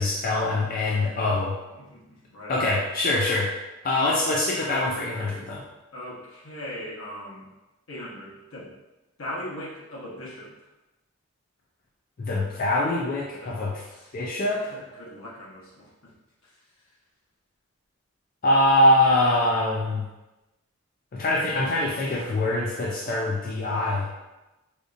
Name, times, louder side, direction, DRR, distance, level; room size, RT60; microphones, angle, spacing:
voice 1, 0.0-1.6 2.5-3.5 3.8-5.6 12.2-13.8 14.1-14.7 18.4-20.0 21.1-24.1, left 1 dB, 40° left, -3 dB, 0.4 m, -23 dB
voice 2, 1.7-2.6 4.0-4.1 5.9-7.5 7.9-8.7 9.2-10.5 12.4-12.5 13.4-13.5 13.8-14.1 14.6-16.1 16.4-16.5, left 1 dB, 80° left, -6 dB, 1.1 m, -39 dB
5.0 x 2.4 x 2.5 m, 1.1 s
head